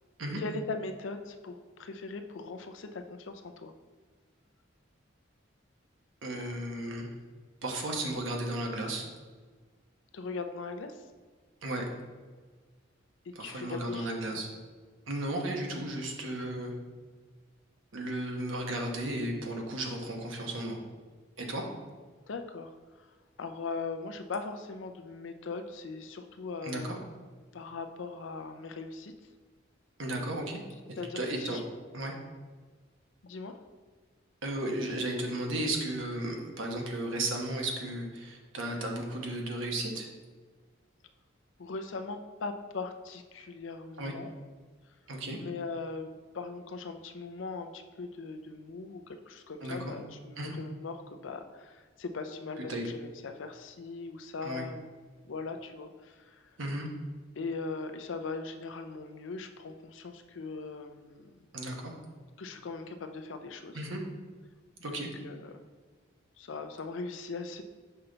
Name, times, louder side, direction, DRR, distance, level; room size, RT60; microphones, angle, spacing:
voice 1, 0.4-3.7 10.1-11.0 13.2-14.6 22.3-22.7 23.0-23.1 23.4-27.0 27.5-29.1 30.9-31.6 33.2-33.5 41.6-44.3 45.4-54.9 55.3-56.4 57.4-61.3 62.4-63.8 64.9-65.5 66.4-67.6, left 4 dB, 70° left, 8 dB, 0.5 m, -40 dB
voice 2, 6.2-7.1 7.6-9.1 11.6-11.8 13.3-14.5 15.1-16.7 17.9-20.8 21.4-21.6 26.6-26.9 30.0-30.6 30.9-31.6 31.9-32.1 34.4-40.1 44.0-44.1 45.1-45.4 49.6-49.9 50.4-50.6 52.6-52.9 54.4-54.7 56.6-56.9 61.5-61.9 63.7-64.0 64.8-65.1, right 1 dB, 75° right, 1 dB, 1.1 m, -34 dB
5.6 x 5.5 x 3.9 m, 1.5 s
head